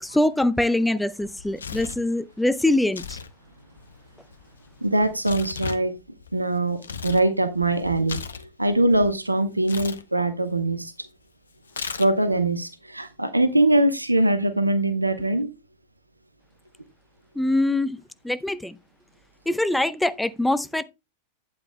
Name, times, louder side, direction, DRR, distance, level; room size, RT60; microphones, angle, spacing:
voice 1, 0.0-3.2 17.4-18.0 18.2-18.8 19.5-20.8, left 1 dB, 5° left, 0.5 m, -23 dB
Tearing, 1.2-2.1 2.8-3.3 3.6-7.3 7.6-9.1 9.6-10.0 11.7-12.3, left 5 dB, 70° left, 0.7 m, -36 dB
voice 2, 4.8-5.9 6.3-11.1 12.0-15.5, right 1 dB, 85° right, 0.9 m, -22 dB
11.5 x 9.0 x 2.2 m
figure-of-eight pair, 90°, 0 cm